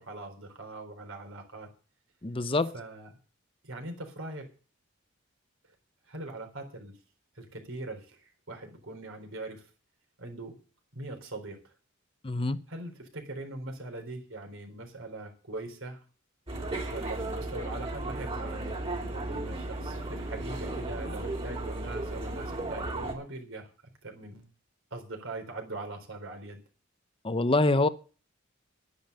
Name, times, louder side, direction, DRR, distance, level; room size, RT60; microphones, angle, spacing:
voice 1, 0.0-1.7 2.7-3.1 3.6-4.5 6.0-7.0 7.3-9.7 10.2-10.6 10.9-11.6 12.7-16.0 16.9-23.7 24.0-24.5 24.9-26.6, right 2 dB, 65° right, 4.1 m, -41 dB
voice 2, 2.2-2.7 12.2-12.6 27.2-27.9, left 2 dB, 25° left, 0.7 m, -25 dB
sound 1, 16.5-23.1, right 2 dB, 30° right, 3.5 m, -35 dB
11.0 x 10.5 x 6.7 m
head